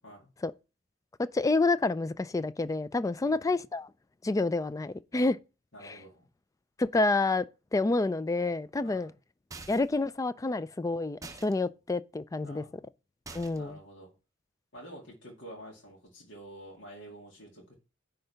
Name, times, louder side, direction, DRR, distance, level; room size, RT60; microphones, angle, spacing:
voice 1, 1.3-3.9 4.2-5.4 5.8-6.0 6.8-7.4 7.7-9.1 9.7-12.6 13.3-13.8, left 3 dB, 15° left, 0.3 m, -28 dB
voice 2, 3.2-3.6 5.7-6.3 8.8-9.1 12.4-12.8 13.5-14.1 14.7-17.7, right 1 dB, 65° left, 2.2 m, -48 dB
sound 1, 9.5-10.0 11.2-11.5 13.3-13.8, right 3 dB, 15° right, 0.7 m, -46 dB
9.9 x 3.8 x 5.6 m
head